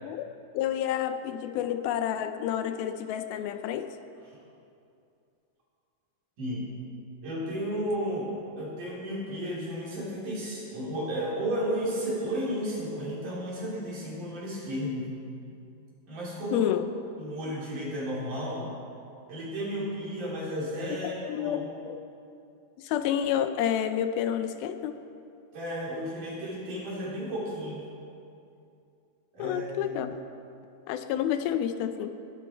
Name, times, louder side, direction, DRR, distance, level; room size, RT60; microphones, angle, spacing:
voice 1, 0.0-3.9 16.5-16.9 21.0-22.0 22.8-24.9 29.4-30.2 30.9-32.1, left 10 dB, 85° left, 9 dB, 2.5 m, -29 dB
voice 2, 6.4-6.7 7.2-8.3 8.6-15.1 16.1-16.7 17.2-18.7 19.3-21.6 25.5-27.8 29.3-30.0, equal, 55° right, -6 dB, 4.8 m, -33 dB
20.0 x 11.0 x 4.4 m, 2.6 s
omnidirectional pair, 4.3 m